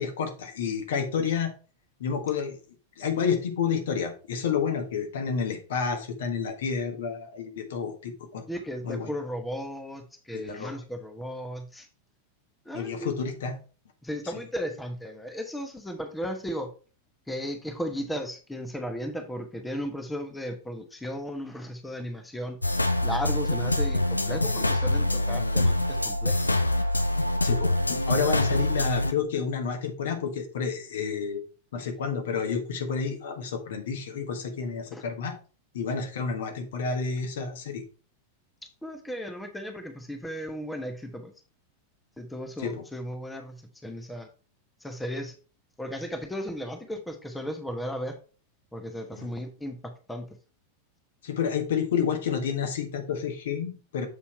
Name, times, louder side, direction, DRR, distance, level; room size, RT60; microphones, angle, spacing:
voice 1, 0.0-1.5 2.0-2.6 3.0-8.5 8.8-9.1 10.3-10.8 12.7-13.5 27.4-31.4 31.7-35.3 35.7-37.8 42.6-42.7 49.2-49.3 51.2-54.1, left 6 dB, 60° left, 5 dB, 1.4 m, -30 dB
voice 2, 8.5-11.9 12.6-13.1 14.0-16.7 17.3-22.6 23.0-26.4 34.9-35.0 38.8-41.3 42.2-44.3 44.8-45.3 45.8-48.2 48.7-50.3, equal, 5° left, 6 dB, 1.0 m, -35 dB
sound 1, 22.6-29.1, left 1 dB, 85° left, 0.5 m, -25 dB
7.3 x 4.3 x 4.4 m, 0.36 s
figure-of-eight pair, 90°, 0 cm